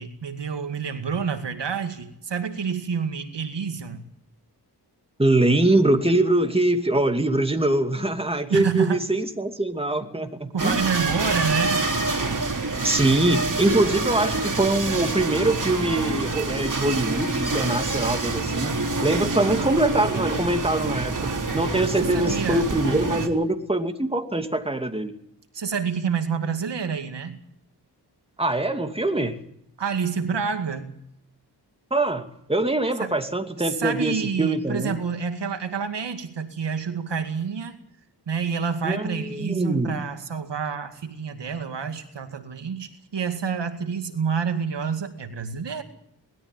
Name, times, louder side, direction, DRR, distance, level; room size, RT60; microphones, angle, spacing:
voice 1, 0.0-4.0 8.5-9.0 10.5-11.9 22.0-22.7 25.5-27.4 29.8-30.9 33.0-33.2 33.6-37.8 38.3-45.8, right 6 dB, 75° right, 7 dB, 2.2 m, -28 dB
voice 2, 5.2-10.8 12.8-18.7 19.0-25.1 28.4-29.4 31.9-35.0 38.8-40.1, right 2 dB, 15° right, 6 dB, 2.6 m, -23 dB
sound 1, 10.6-23.3, right 3 dB, 45° right, 3.3 m, -26 dB
21.0 x 13.5 x 9.2 m, 0.73 s
cardioid pair, 65°, 42 cm